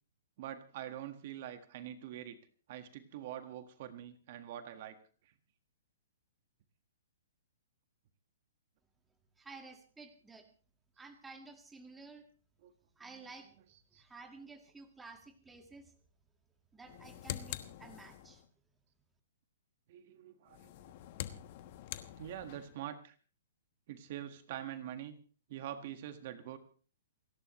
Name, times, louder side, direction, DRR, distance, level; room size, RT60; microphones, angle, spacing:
voice 1, 0.4-2.4 2.7-4.9 5.2-5.3 12.6-12.7 13.0-13.6 19.9-20.9 22.2-23.1 23.9-25.1 25.5-26.6, right 11 dB, 50° right, 9 dB, 1.6 m, -45 dB
voice 2, 9.4-10.5 11.0-12.2 13.0-13.6 13.9-15.9 16.7-18.4, right 3 dB, 10° right, 5 dB, 1.8 m, -52 dB
sound 1, 16.8-18.5 20.5-22.8, left 13 dB, 45° left, 1.2 m, -45 dB
28.5 x 11.5 x 3.1 m, 0.41 s
hypercardioid pair, 150°, 0 cm